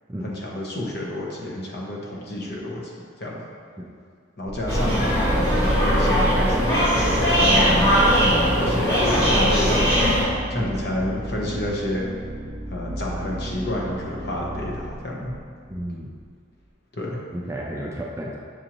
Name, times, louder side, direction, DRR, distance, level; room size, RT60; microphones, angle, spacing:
voice 1, 0.2-2.9 3.2-3.4 4.4-5.1 5.3-7.8 8.4-9.9 10.5-12.1 12.7-15.3 16.9-17.2, left 1 dB, 55° left, -3 dB, 0.8 m, -30 dB
sound 1, 4.5-16.2, right 1 dB, 70° right, 0.6 m, -34 dB
sound 2, 4.7-10.2, equal, 15° left, 0.9 m, -19 dB
voice 2, 15.7-16.1 17.3-18.4, right 1 dB, 15° right, -3 dB, 0.3 m, -32 dB
7.1 x 2.5 x 2.9 m, 2.1 s
head